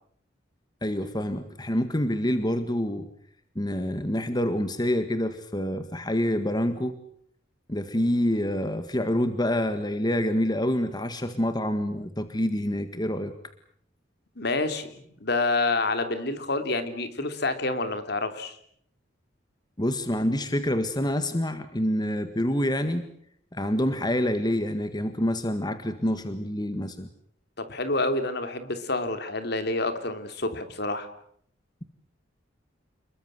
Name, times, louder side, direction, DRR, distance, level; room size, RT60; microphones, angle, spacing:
voice 1, 0.8-3.1 3.5-6.9 7.7-13.3 19.8-23.1 23.5-27.1, left 1 dB, 20° left, 9 dB, 1.7 m, -27 dB
voice 2, 14.4-18.6 27.6-31.1, left 2 dB, 55° left, 9 dB, 3.3 m, -28 dB
29.0 x 22.0 x 7.8 m, 0.66 s
head